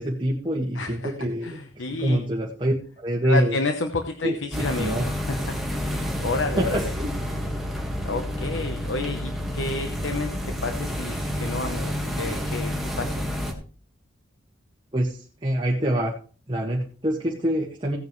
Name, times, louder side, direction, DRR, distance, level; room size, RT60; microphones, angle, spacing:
voice 1, 0.0-1.5 2.0-3.6 4.2-5.0 6.6-7.1 14.9-16.1 16.5-18.0, right 1 dB, 25° right, -2 dB, 1.8 m, -25 dB
voice 2, 0.7-1.1 1.4-2.2 3.2-5.6 5.8-6.9 8.0-13.3, left 3 dB, 80° left, 6 dB, 1.0 m, -30 dB
sound 1, 4.5-13.5, equal, ahead, 1.7 m, -29 dB
16.5 x 9.2 x 3.2 m, 0.39 s
head